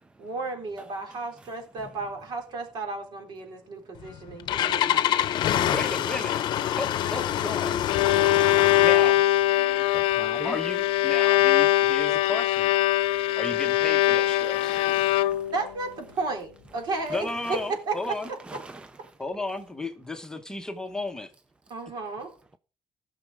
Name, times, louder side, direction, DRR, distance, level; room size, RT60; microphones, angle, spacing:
voice 1, 0.2-5.1 13.5-13.6 15.5-18.0 21.7-22.3, right 3 dB, 55° right, 3.8 m, -33 dB
Engine starting, 4.0-9.1, left 11 dB, 55° left, 0.8 m, -26 dB
voice 2, 5.7-6.4 6.8-7.8 8.8-9.2 10.4-12.7 13.1-14.8 17.1-18.3 19.2-21.3, left 2 dB, 5° left, 1.1 m, -34 dB
Bowed string instrument, 7.6-15.7, left 14 dB, 90° left, 0.4 m, -22 dB
voice 3, 10.2-10.6 14.5-15.5 18.4-18.9, right 2 dB, 10° right, 0.5 m, -41 dB
16.5 x 6.5 x 4.8 m
cardioid pair, 140°, 9 cm